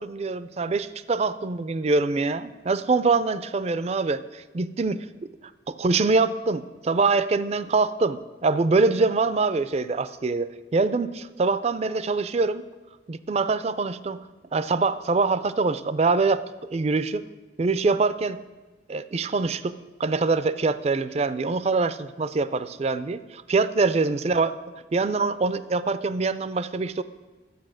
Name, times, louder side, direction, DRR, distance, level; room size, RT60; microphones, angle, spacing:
voice 1, 0.0-5.1 5.7-12.6 13.1-14.2 14.5-16.4 16.7-17.2 17.6-18.4 18.9-24.5 24.9-27.0, right 3 dB, 35° right, 15 dB, 0.4 m, -24 dB
12.0 x 8.3 x 6.3 m, 1.2 s
head